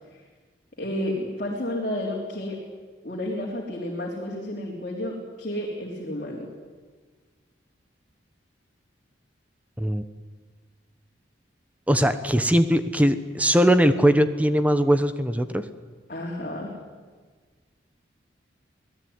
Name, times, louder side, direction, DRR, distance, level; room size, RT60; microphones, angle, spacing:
voice 1, 0.8-2.6 3.0-6.5 16.1-16.8, left 1 dB, 45° left, -2 dB, 3.7 m, -31 dB
voice 2, 11.9-15.6, equal, 10° right, 10 dB, 1.0 m, -20 dB
26.5 x 18.0 x 9.7 m, 1.4 s
head